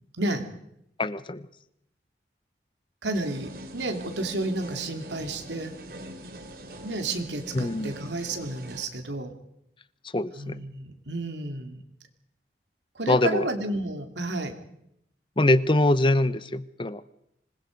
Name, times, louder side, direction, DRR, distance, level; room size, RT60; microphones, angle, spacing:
voice 1, 0.2-0.5 3.0-5.8 6.8-9.3 10.3-11.8 12.9-14.5, right 2 dB, 85° right, 5 dB, 2.9 m, -31 dB
voice 2, 1.0-1.4 7.5-7.9 10.1-10.6 13.1-13.5 15.4-17.0, left 2 dB, 30° left, 15 dB, 0.8 m, -23 dB
sound 1, 3.1-8.9, right 1 dB, 55° right, 3.2 m, -43 dB
26.0 x 20.5 x 5.3 m, 0.78 s
head